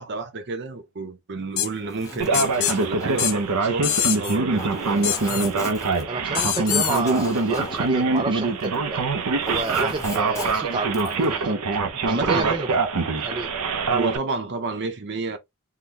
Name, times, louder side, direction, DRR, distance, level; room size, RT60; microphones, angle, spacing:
voice 1, 0.0-5.1 12.0-12.6 13.9-15.4, right 3 dB, 50° right, 0.7 m, -30 dB
sound 1, 1.6-1.7 2.3-2.8 3.2-3.3 3.8-4.4 5.0-5.5 6.4-7.0, left 11 dB, 65° left, 0.5 m, -24 dB
Zipper (clothing), 1.8-8.9 9.2-11.3, left 1 dB, 15° left, 1.1 m, -38 dB
Male speech man speaking, 2.2-14.2, right 3 dB, 90° right, 0.7 m, -24 dB
voice 2, 6.1-9.0 9.5-11.6 12.0-12.7 13.2-13.5, right 3 dB, 20° right, 0.3 m, -29 dB
3.9 x 2.2 x 2.9 m
head